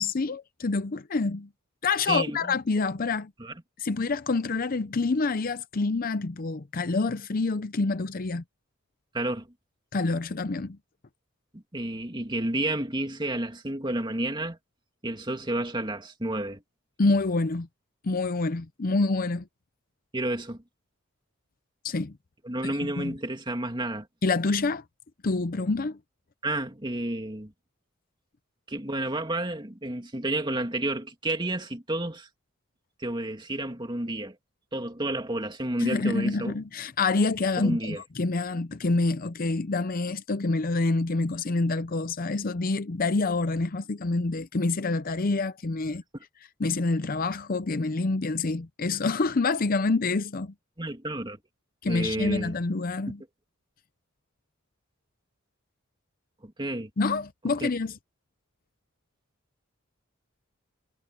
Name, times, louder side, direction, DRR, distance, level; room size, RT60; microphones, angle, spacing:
voice 1, 0.0-1.5 1.8-3.3 3.8-8.4 9.9-10.8 17.0-17.7 18.0-19.5 21.8-22.1 23.0-23.1 24.2-24.8 25.2-26.0 35.8-46.0 46.6-50.5 51.8-53.2 57.0-57.9, left 3 dB, 45° left, 0.6 m, -27 dB
voice 2, 2.1-2.5 3.4-3.5 9.1-9.5 11.5-14.6 15.0-16.6 20.1-20.6 22.4-24.1 26.4-27.5 28.7-32.3 33.0-34.4 34.7-36.6 37.6-38.0 50.8-51.4 51.9-52.5 56.4-56.9 57.6-57.7, right 1 dB, 20° right, 2.6 m, -30 dB
head